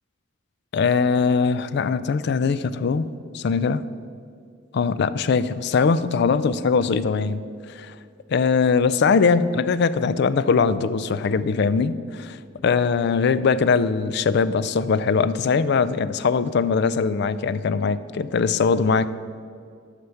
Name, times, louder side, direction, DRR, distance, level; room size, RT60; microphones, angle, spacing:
voice 1, 0.7-3.1 3.3-3.8 4.7-7.4 7.7-7.9 8.3-19.1, left 5 dB, 55° left, 15 dB, 0.4 m, -21 dB
9.7 x 5.8 x 6.9 m, 2.3 s
head